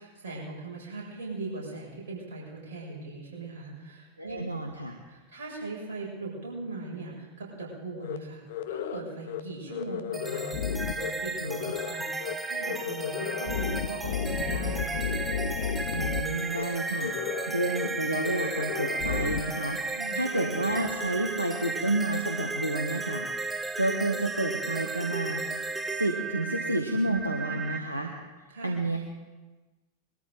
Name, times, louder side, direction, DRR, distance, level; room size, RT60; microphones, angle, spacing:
voice 1, 0.0-4.4 5.1-8.4 8.7-15.0 19.9-20.2 27.0-27.6 28.5-28.8, right 2 dB, 60° right, -3 dB, 6.6 m, -39 dB
voice 2, 4.2-5.0 11.4-11.7 15.9-17.2 17.5-23.3 23.5-25.4 25.9-28.1 28.6-29.0, right 1 dB, 85° right, 2 dB, 1.1 m, -30 dB
sound 1, 8.0-8.2 8.5-9.0 9.3-9.4 9.7-11.1 11.4-11.9 12.2-12.3 12.6-16.2 16.5-16.6 17.0-17.5 17.7-17.9 18.2-19.4, left 8 dB, 55° left, 0.7 m, -33 dB
sound 2, 10.1-27.8, right 3 dB, 10° right, 0.7 m, -34 dB
21.5 x 13.5 x 3.9 m, 1.2 s
figure-of-eight pair, 90°, 0 cm